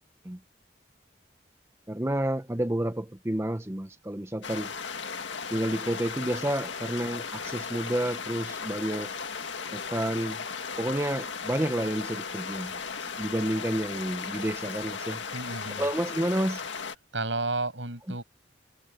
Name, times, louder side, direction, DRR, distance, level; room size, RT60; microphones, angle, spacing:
voice 1, 1.9-4.7 5.5-9.1 9.7-10.4 10.8-12.8 13.2-15.2 15.8-16.7, right 1 dB, 15° right, 0.7 m, -30 dB
sound 1, 4.4-17.0, left 5 dB, 80° left, 2.0 m, -36 dB
voice 2, 15.3-15.9 17.1-18.2, right 2 dB, 80° right, 7.4 m, -32 dB
head